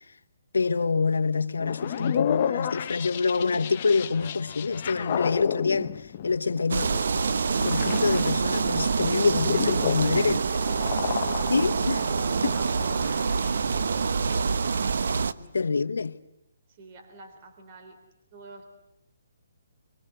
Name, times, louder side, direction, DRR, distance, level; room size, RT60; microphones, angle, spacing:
voice 1, 0.5-6.0 6.2-6.9 7.6-10.4 11.5-12.0 15.5-16.2, left 4 dB, 85° left, 1.1 m, -26 dB
sound 1, 1.6-8.4 8.9-14.4, left 9 dB, 40° left, 1.0 m, -32 dB
sound 2, 6.7-15.3, right 5 dB, 70° right, 1.0 m, -26 dB
voice 2, 8.9-14.6 15.1-15.5 16.7-18.0 18.3-18.7, right 4 dB, 35° right, 3.6 m, -46 dB
Bass guitar, 9.4-13.0, right 5 dB, 50° right, 2.5 m, -44 dB
24.5 x 22.5 x 8.0 m
hypercardioid pair, 155°, 0 cm